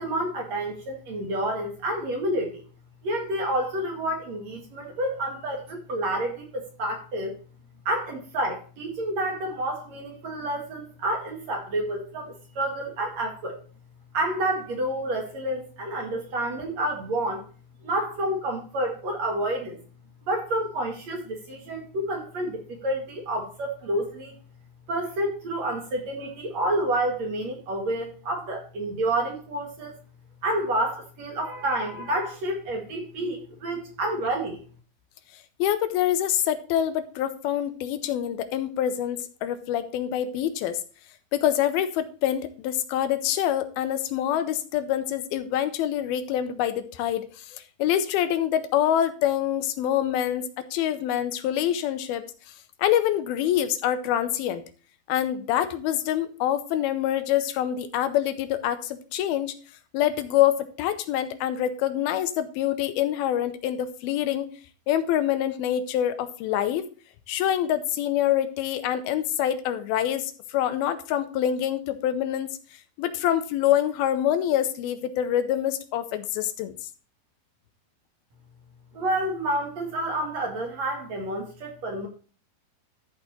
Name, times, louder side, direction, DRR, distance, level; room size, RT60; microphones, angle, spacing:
voice 1, 0.0-2.6 3.0-7.3 7.9-13.6 14.1-17.4 17.8-19.8 20.2-24.4 24.9-29.9 30.4-34.6 78.9-82.1, right 1 dB, 50° right, 1 dB, 2.8 m, -29 dB
voice 2, 35.6-40.8 41.3-52.3 52.8-54.6 55.1-59.6 59.9-64.5 64.9-66.9 67.3-72.5 73.0-76.8, left 11 dB, 85° left, 10 dB, 2.6 m, -26 dB
13.0 x 4.8 x 4.2 m, 0.38 s
omnidirectional pair, 4.4 m